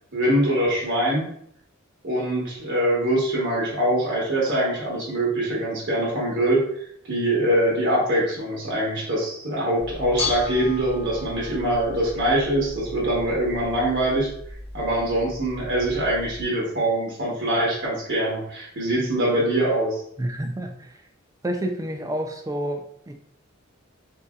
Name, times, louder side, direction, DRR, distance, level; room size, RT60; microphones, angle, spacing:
voice 1, 0.1-1.3 2.0-6.6 7.1-14.3 14.7-20.0, right 1 dB, 60° right, -4 dB, 1.1 m, -23 dB
Bell / Dishes pots and pans, 9.8-16.4, left 3 dB, 30° left, 0.7 m, -35 dB
voice 2, 20.2-21.0 21.4-23.1, right 1 dB, 15° right, 4 dB, 0.4 m, -29 dB
3.9 x 2.6 x 2.4 m, 0.68 s
head